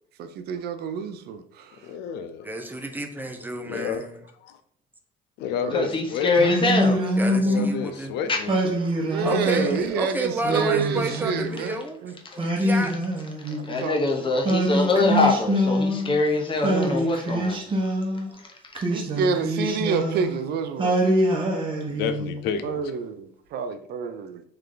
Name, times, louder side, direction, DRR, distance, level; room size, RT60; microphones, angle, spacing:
voice 1, 0.2-1.8 5.6-5.8 9.0-12.1 13.5-14.4 18.9-21.0 22.6-24.4, right 5 dB, 70° right, 0.5 m, -28 dB
voice 2, 1.7-2.5 3.6-4.0 4.4-4.6 5.4-6.3 7.4-8.8 21.9-22.8, left 7 dB, 85° left, 0.5 m, -30 dB
voice 3, 2.4-4.2 7.2-8.1 8.6-8.7 9.2-12.0 12.4-12.9 16.6-16.8, right 2 dB, 10° right, 0.6 m, -31 dB
voice 4, 5.7-7.0 8.3-8.4 12.3-12.5 13.7-17.8, left 3 dB, 30° left, 0.9 m, -23 dB
Singing, 6.4-7.8 8.5-9.8 10.4-11.7 12.4-13.9 14.4-16.2 16.6-18.3 18.7-20.4 20.8-22.4, equal, 30° right, 1.0 m, -25 dB
3.4 x 3.2 x 3.8 m
cardioid pair, 110°, 17 cm